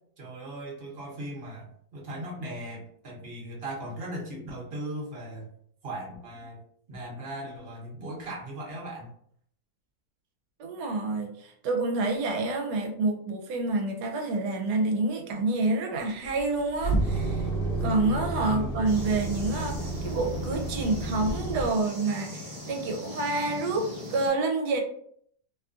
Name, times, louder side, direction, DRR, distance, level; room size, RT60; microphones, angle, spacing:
voice 1, 0.2-5.5 5.8-6.6 6.9-9.1 18.5-19.0, right 1 dB, 45° right, -3 dB, 0.9 m, -38 dB
voice 2, 10.6-17.5 17.8-24.8, right 3 dB, 80° right, 2 dB, 1.1 m, -28 dB
sound 1, 16.1-21.6, right 2 dB, 85° left, 0.5 m, -30 dB
sound 2, 18.8-24.3, left 1 dB, 20° right, 0.7 m, -41 dB
2.8 x 2.3 x 2.4 m, 0.64 s
omnidirectional pair, 1.7 m